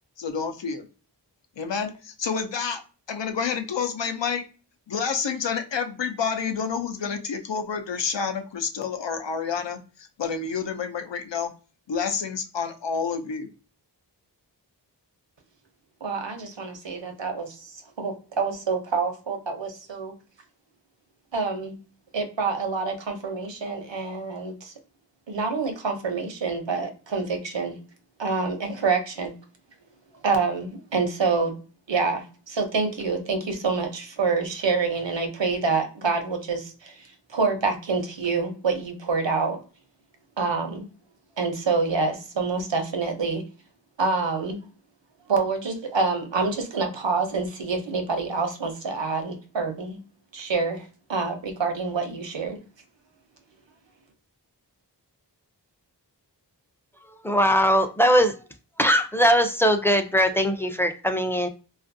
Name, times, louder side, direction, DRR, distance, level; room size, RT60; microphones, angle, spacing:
voice 1, 0.2-0.9 1.6-2.8 3.1-4.4 4.9-9.8 10.2-11.5 11.9-13.5, left 6 dB, 80° left, 6 dB, 0.6 m, -29 dB
voice 2, 16.0-20.1 21.3-21.8 22.1-24.7 25.3-27.8 28.2-29.3 30.2-31.6 31.9-39.6 40.4-40.9 41.4-43.4 44.0-44.6 45.3-50.0 50.3-52.6, right 4 dB, 90° right, 5 dB, 0.7 m, -27 dB
voice 3, 57.2-58.3 58.8-61.5, equal, 5° left, 7 dB, 0.4 m, -20 dB
2.4 x 2.3 x 2.6 m, 0.36 s
wide cardioid pair, 45°, 43 cm